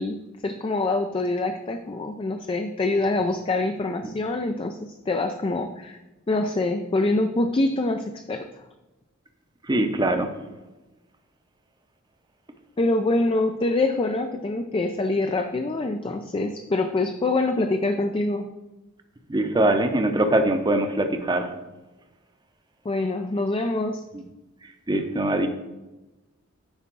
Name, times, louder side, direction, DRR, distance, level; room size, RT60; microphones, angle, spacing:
voice 1, 0.0-6.0 6.3-8.5 12.8-18.5 22.8-24.0, left 2 dB, 25° left, 6 dB, 0.4 m, -25 dB
voice 2, 9.7-10.3 19.3-21.5 24.9-25.5, right 1 dB, 20° right, 6 dB, 0.7 m, -22 dB
9.7 x 3.5 x 6.0 m, 1.1 s
head